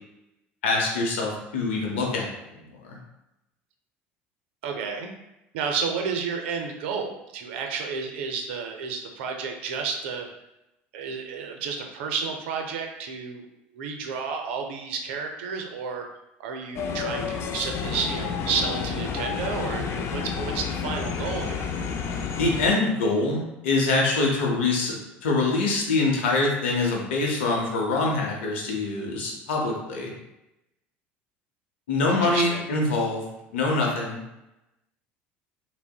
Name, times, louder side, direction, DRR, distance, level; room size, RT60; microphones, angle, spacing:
voice 1, 0.6-2.3 2.9-3.0 22.4-24.9 25.2-30.1 31.9-33.2 33.5-34.2, left 3 dB, 85° left, -1 dB, 0.7 m, -24 dB
voice 2, 4.6-5.1 5.5-10.3 10.9-13.5 13.7-16.1 16.4-21.7 32.1-32.6, right 5 dB, 80° right, 3 dB, 0.4 m, -31 dB
sound 1, 16.7-22.7, left 6 dB, 45° left, 0.3 m, -30 dB
3.6 x 2.0 x 2.3 m, 0.91 s
hypercardioid pair, 80°, 6 cm